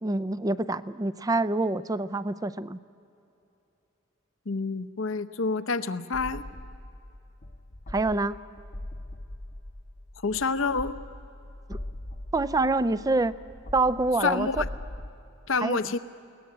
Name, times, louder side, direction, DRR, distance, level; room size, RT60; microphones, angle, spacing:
voice 1, 0.0-2.8 7.9-8.4 11.7-11.8 12.3-13.4 13.7-14.5 15.6-15.8, right 2 dB, 15° right, 15 dB, 0.4 m, -26 dB
voice 2, 4.5-6.4 10.2-10.9 14.2-14.7 15.5-16.0, left 4 dB, 70° left, 11 dB, 0.8 m, -28 dB
sound 1, 6.1-15.1, left 1 dB, 35° left, 0.8 m, -41 dB
21.5 x 18.5 x 8.7 m, 2.8 s
head